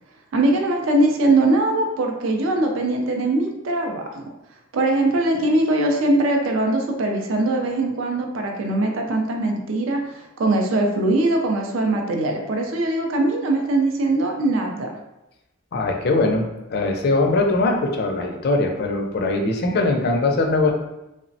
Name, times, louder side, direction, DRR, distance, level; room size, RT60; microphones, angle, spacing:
voice 1, 0.3-4.2 4.7-14.9, right 2 dB, 65° right, 2 dB, 0.4 m, -21 dB
voice 2, 15.7-20.7, left 2 dB, 50° left, 2 dB, 0.4 m, -21 dB
3.2 x 2.0 x 2.6 m, 0.92 s
head